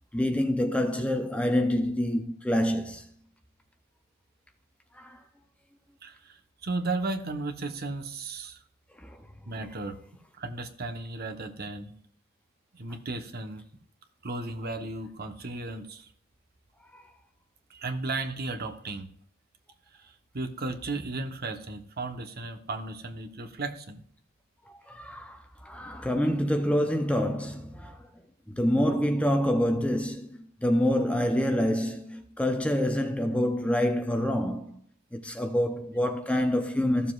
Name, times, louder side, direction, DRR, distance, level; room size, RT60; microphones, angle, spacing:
voice 1, 0.1-3.1 4.9-5.2 9.0-9.2 16.9-17.1 24.9-28.1 28.5-34.8 35.1-37.1, left 1 dB, 5° left, 0.6 m, -27 dB
voice 2, 6.0-8.6 9.5-10.0 10.4-11.9 12.7-13.6 14.2-16.1 17.7-19.1 20.0-24.0, right 2 dB, 45° right, 1.1 m, -35 dB
15.0 x 7.2 x 2.4 m
head